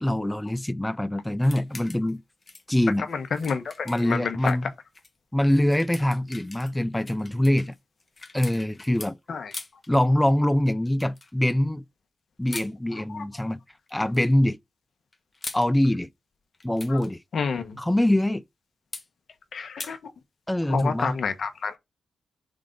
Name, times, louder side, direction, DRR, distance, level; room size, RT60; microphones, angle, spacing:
voice 1, 0.0-2.2 2.7-3.0 3.9-4.6 5.3-7.8 8.3-9.2 9.9-11.8 12.4-13.6 13.9-14.6 15.5-16.1 16.6-17.2 17.8-18.4 20.5-21.2, left 1 dB, 10° left, 0.4 m, -24 dB
sound 1, 1.4-2.2 2.4-4.6 4.9-5.1 5.5-9.1 9.5-9.9 11.0-11.3 12.5-12.7 13.9-14.3 15.1-15.7 16.5-17.1 18.9-19.1 19.8-20.0, left 3 dB, 30° left, 1.4 m, -42 dB
voice 2, 3.1-4.6 9.3-9.5 12.9-13.2 16.9-17.0 17.3-17.8 19.5-20.1 20.6-21.8, left 5 dB, 60° left, 1.3 m, -30 dB
5.1 x 3.8 x 5.4 m
cardioid pair, 60°, 0 cm